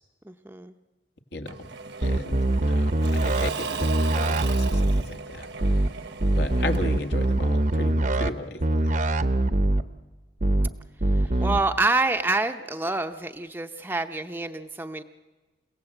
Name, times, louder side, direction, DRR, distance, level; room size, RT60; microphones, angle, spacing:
voice 1, 0.2-0.7 11.1-15.0, right 2 dB, 10° right, 6 dB, 0.7 m, -27 dB
Engine / Mechanisms / Drill, 1.5-8.1, right 4 dB, 70° right, 1.1 m, -37 dB
voice 2, 2.0-2.9 3.2-5.5 6.3-9.0 11.3-11.4, left 1 dB, 70° left, 5 dB, 2.0 m, -35 dB
sound 1, 2.0-3.5 3.8-5.0 5.6-5.9 6.2-8.3 8.6-9.8 10.4-10.7 11.0-11.6, right 1 dB, 45° right, 0.8 m, -23 dB
29.0 x 17.0 x 7.9 m, 1.3 s
head